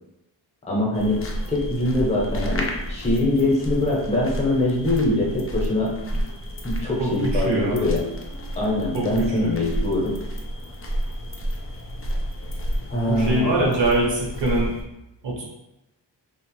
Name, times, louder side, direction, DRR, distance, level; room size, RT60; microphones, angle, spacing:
voice 1, 0.7-6.2 6.6-8.1 8.6-10.2 12.9-13.8, left 1 dB, 15° left, -4 dB, 0.7 m, -23 dB
sound 1, 0.9-14.8, equal, 35° left, 0.4 m, -30 dB
voice 2, 7.0-7.8 8.9-9.5 13.1-14.7 15.2-15.4, right 1 dB, 70° right, -2 dB, 1.0 m, -24 dB
3.0 x 2.1 x 3.1 m, 0.91 s
wide cardioid pair, 140°, 44 cm